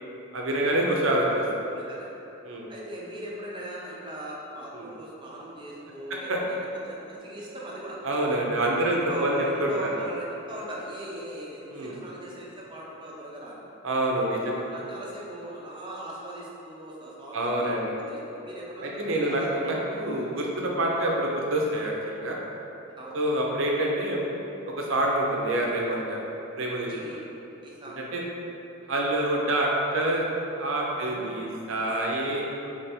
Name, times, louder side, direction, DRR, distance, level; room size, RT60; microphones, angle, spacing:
voice 1, 0.3-1.4 2.4-2.7 4.7-4.9 6.1-6.4 8.0-9.3 9.6-9.7 11.7-12.0 13.8-14.6 17.3-17.9 18.8-22.4 23.1-24.2 24.8-26.2 26.6-27.1 28.0-28.2 28.9-30.3 30.6-32.4, right 1 dB, 60° right, -2 dB, 0.6 m, -26 dB
voice 2, 1.7-2.1 2.7-6.3 6.8-8.0 8.8-13.6 14.3-17.7 18.1-19.5 23.0-23.2 26.9-27.2 27.6-28.1 30.9-31.4 32.1-32.4, right 1 dB, 20° right, -5 dB, 0.6 m, -39 dB
3.3 x 3.2 x 4.3 m, 3.0 s
head